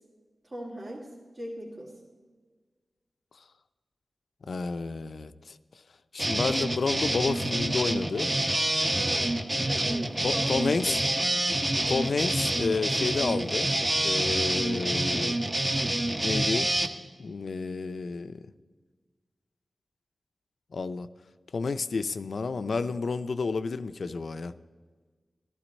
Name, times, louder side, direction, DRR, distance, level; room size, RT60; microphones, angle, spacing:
voice 1, 0.4-1.1 1.3-2.1 8.9-11.0, right 1 dB, 50° right, -5 dB, 2.2 m, -39 dB
voice 2, 4.5-5.5 6.1-8.3 10.2-11.0 11.9-15.4 16.2-16.7 17.2-18.4 20.7-21.1 21.5-24.5, left 4 dB, 70° left, 13 dB, 0.4 m, -30 dB
sound 1, 6.2-16.9, right 1 dB, 30° right, 1.0 m, -27 dB
14.0 x 12.0 x 4.2 m, 1.5 s
cardioid pair, 50°, 0 cm